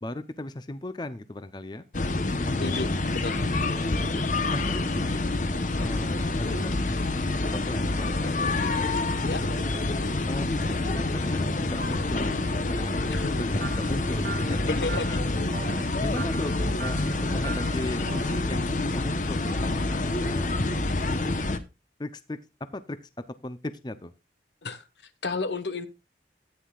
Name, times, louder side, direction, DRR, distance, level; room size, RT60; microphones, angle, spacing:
voice 1, 0.0-1.9 3.7-5.2 5.8-6.9 7.5-8.8 9.7-10.0 10.3-14.6 15.1-15.2 16.0-16.5 16.8-21.5 22.0-23.1 23.4-24.1, left 1 dB, 25° left, 0.6 m, -37 dB
sound 1, 1.9-21.6, left 2 dB, 45° left, 0.9 m, -27 dB
voice 2, 2.6-3.4 9.3-9.4 13.1-13.3 14.5-15.3 24.6-24.8 25.2-25.9, left 3 dB, 80° left, 1.2 m, -32 dB
sound 2, 13.6-18.4, right 4 dB, 55° right, 0.7 m, -40 dB
13.5 x 9.4 x 2.4 m
head